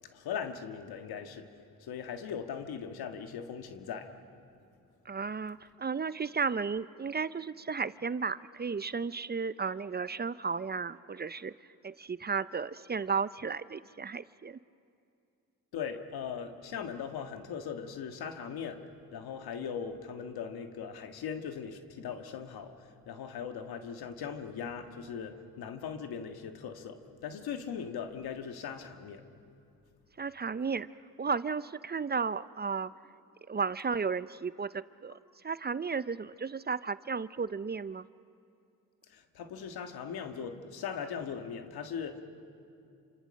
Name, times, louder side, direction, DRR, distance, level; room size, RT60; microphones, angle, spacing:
voice 1, 0.1-1.5 1.8-4.1 15.7-18.8 19.1-29.2 39.1-42.2, left 7 dB, 80° left, 7 dB, 1.7 m, -39 dB
voice 2, 5.1-11.5 11.8-14.6 30.2-30.9 31.2-32.9 33.5-35.2 35.4-38.0, right 5 dB, 25° right, 16 dB, 0.5 m, -34 dB
28.0 x 26.5 x 6.5 m, 2.5 s
cardioid pair, 65°, 37 cm